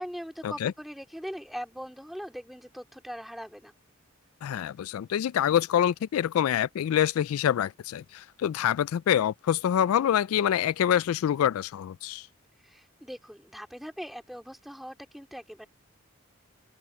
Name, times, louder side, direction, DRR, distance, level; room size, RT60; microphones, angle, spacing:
voice 1, 0.0-3.7 12.6-15.7, equal, ahead, 2.9 m, -40 dB
voice 2, 4.4-12.3, left 10 dB, 90° left, 0.3 m, -26 dB
open air
head